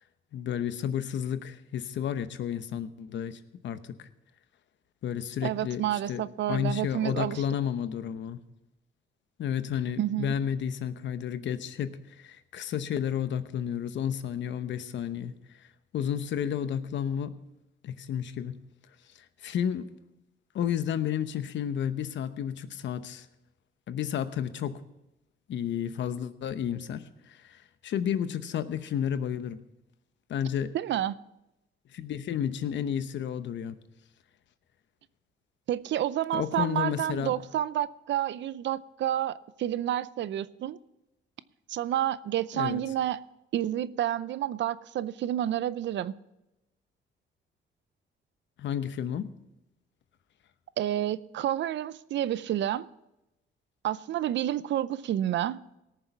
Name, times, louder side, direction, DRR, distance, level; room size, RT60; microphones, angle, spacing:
voice 1, 0.3-4.1 5.0-5.8 6.1-6.2 6.5-8.4 9.4-15.7 15.9-17.3 17.8-18.6 19.1-19.9 20.5-23.3 23.9-24.8 25.5-29.6 30.3-30.7 31.9-33.8 36.3-37.3 42.5-42.8 48.6-49.3, left 9 dB, 65° left, 0.9 m, -32 dB
voice 2, 5.4-7.4 10.0-10.4 30.7-31.2 35.7-40.8 41.7-43.2 43.5-46.1 50.8-52.9 53.8-55.6, right 12 dB, 65° right, 0.5 m, -29 dB
18.0 x 7.0 x 5.8 m
cardioid pair, 90°, 20 cm